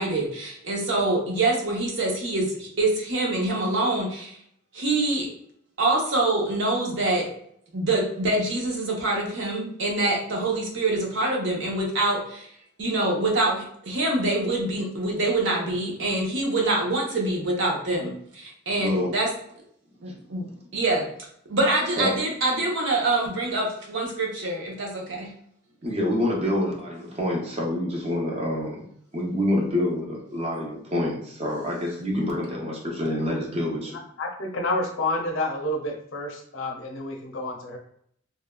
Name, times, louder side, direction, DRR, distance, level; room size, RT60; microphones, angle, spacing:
voice 1, 0.0-4.4 4.7-5.3 5.8-7.3 7.7-12.5 12.8-19.3 20.0-20.5 20.7-21.1 21.5-25.3, right 2 dB, 60° right, -2 dB, 0.8 m, -25 dB
voice 2, 18.8-19.1 22.0-22.2 25.8-28.9 29.1-34.0, left 1 dB, 30° right, -1 dB, 0.5 m, -27 dB
voice 3, 34.2-37.8, left 2 dB, 70° left, 0 dB, 0.7 m, -29 dB
3.1 x 2.2 x 2.2 m, 0.66 s
head